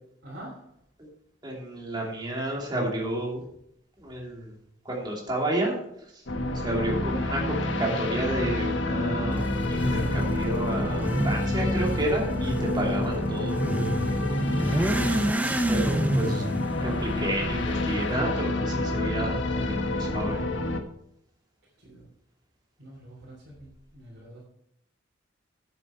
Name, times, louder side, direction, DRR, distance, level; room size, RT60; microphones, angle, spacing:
voice 1, 0.2-0.7 21.8-22.1 22.8-24.4, right 1 dB, 60° right, -7 dB, 3.5 m, -46 dB
voice 2, 1.4-3.4 4.0-4.5 4.8-5.8 6.1-6.2 6.5-13.6 15.7-20.4, right 1 dB, 25° right, -2 dB, 2.9 m, -31 dB
sound 1, 6.3-20.8, left 2 dB, 85° left, 1.3 m, -28 dB
Motorcycle / Accelerating revving vroom, 9.3-18.2, right 1 dB, 10° right, 0.8 m, -30 dB
10.0 x 8.1 x 4.5 m, 0.74 s
head